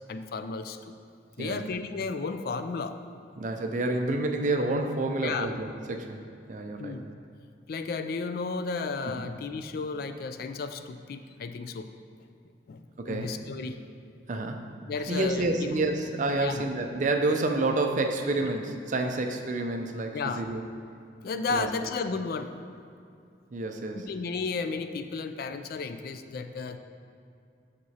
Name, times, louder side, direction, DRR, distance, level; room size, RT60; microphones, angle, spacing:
voice 1, 0.1-0.8 1.4-3.2 5.2-5.5 6.8-7.0 7.7-11.9 12.7-13.8 14.9-15.5 16.4-16.6 20.1-20.4 21.2-22.5 23.9-26.8, left 4 dB, 55° left, 9 dB, 0.3 m, -33 dB
voice 2, 1.4-1.7 3.4-7.1 9.2-9.3 13.0-13.4 14.3-14.7 15.1-20.6 21.5-21.7 23.5-24.1, right 2 dB, 45° right, 4 dB, 0.5 m, -29 dB
7.6 x 6.7 x 2.8 m, 2.4 s
head